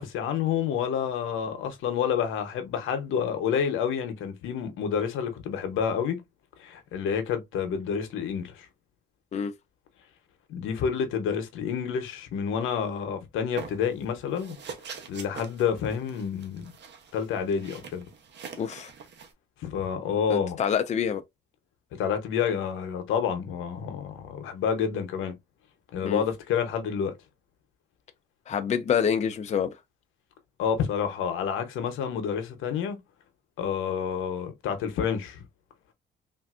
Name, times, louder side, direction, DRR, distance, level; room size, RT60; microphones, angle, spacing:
voice 1, 0.0-6.2 6.6-8.7 10.5-14.6 15.1-16.7 17.1-18.1 19.6-20.6 21.9-25.3 25.9-27.2 30.6-33.0 33.6-35.4, left 7 dB, 85° left, 0.8 m, -29 dB
sound 1, 13.6-14.0 14.4-19.3, right 6 dB, 65° right, 0.8 m, -43 dB
voice 2, 18.6-18.9 20.3-21.2 26.0-26.2 28.5-29.7, left 7 dB, 35° left, 0.4 m, -26 dB
3.3 x 2.6 x 2.4 m
cardioid pair, 90°, 20 cm